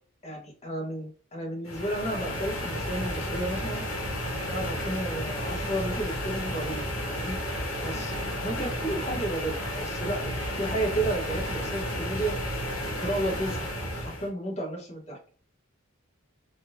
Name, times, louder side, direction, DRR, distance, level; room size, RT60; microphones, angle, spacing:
voice 1, 0.2-3.8 4.5-7.4 7.8-12.4 13.0-15.2, right 1 dB, 30° left, -2 dB, 1.0 m, -32 dB
sound 1, 1.6-14.3, equal, 75° left, 1.3 m, -32 dB
3.7 x 2.7 x 2.5 m, 0.43 s
head